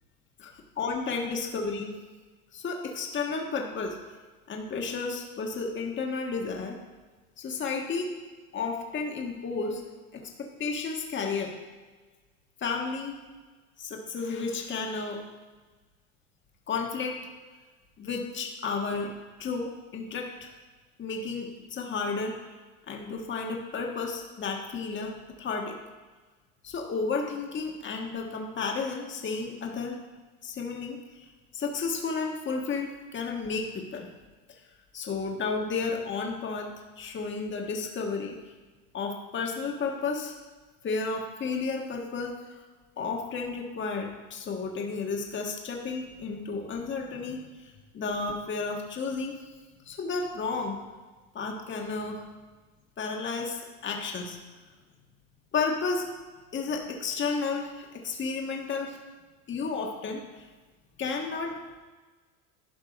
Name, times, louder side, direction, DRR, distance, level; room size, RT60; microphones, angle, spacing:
voice 1, 0.4-1.9 2.5-4.0 4.5-6.8 7.4-8.1 8.5-9.8 10.1-11.5 12.6-13.2 13.8-15.2 16.7-17.2 18.0-19.1 19.4-20.5 21.0-22.4 22.9-25.8 26.6-30.0 30.4-31.0 31.5-34.1 34.9-36.7 37.0-38.4 38.9-40.3 40.8-42.6 43.0-49.5 49.8-50.8 51.3-52.2 53.0-54.4 55.5-56.1 56.5-59.0 59.5-60.5 61.0-61.6, left 4 dB, 25° left, 1 dB, 1.5 m, -32 dB
11.5 x 5.2 x 5.2 m, 1.3 s
supercardioid pair, 110°, 41 cm